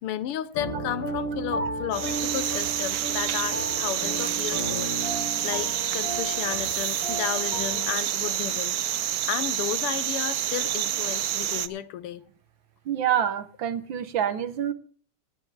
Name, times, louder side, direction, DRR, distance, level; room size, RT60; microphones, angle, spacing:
voice 1, 0.0-5.0 5.4-8.8 9.3-12.2, left 11 dB, 90° left, 1.8 m, -33 dB
sound 1, 0.5-8.0, right 1 dB, 65° left, 4.2 m, -34 dB
sound 2, 1.9-11.7, right 11 dB, 85° right, 0.8 m, -28 dB
voice 2, 12.9-14.7, right 9 dB, 65° right, 1.6 m, -27 dB
18.0 x 10.0 x 3.3 m
omnidirectional pair, 2.4 m